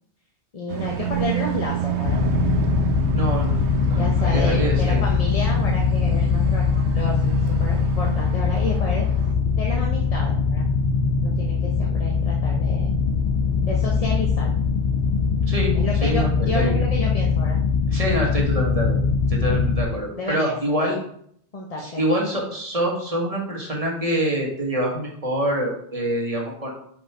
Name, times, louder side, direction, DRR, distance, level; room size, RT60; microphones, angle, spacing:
voice 1, 0.5-2.2 3.7-9.1 9.6-10.7 11.2-12.9 13.7-14.5 15.7-17.6 19.4-19.7 20.1-20.9 21.5-22.1, left 2 dB, 35° left, -1 dB, 0.9 m, -31 dB
sound 1, 0.7-9.3, right 10 dB, 80° right, 1.0 m, -31 dB
sound 2, 2.0-19.8, left 5 dB, 80° left, 1.0 m, -21 dB
voice 2, 3.1-3.6 3.8-5.0 15.5-15.7 16.0-16.7 17.9-19.0 19.3-21.0 21.8-26.7, right 1 dB, 35° right, -2 dB, 1.7 m, -25 dB
5.9 x 5.0 x 4.7 m, 0.67 s
omnidirectional pair, 1.1 m